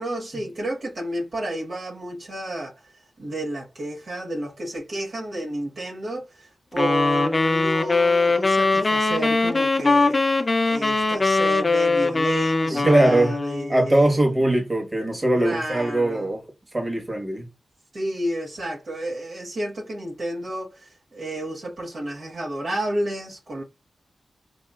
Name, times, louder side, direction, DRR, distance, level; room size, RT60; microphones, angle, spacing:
voice 1, 0.0-2.9 3.2-10.3 10.6-14.2 15.3-16.3 17.9-23.6, right 1 dB, 70° right, 1.0 m, -31 dB
sound 1, 6.8-13.7, left 3 dB, 40° left, 0.5 m, -21 dB
voice 2, 12.7-13.3 13.7-16.4 16.7-17.5, right 1 dB, 30° right, 1.4 m, -21 dB
4.0 x 2.8 x 2.3 m
cardioid pair, 40°, 0 cm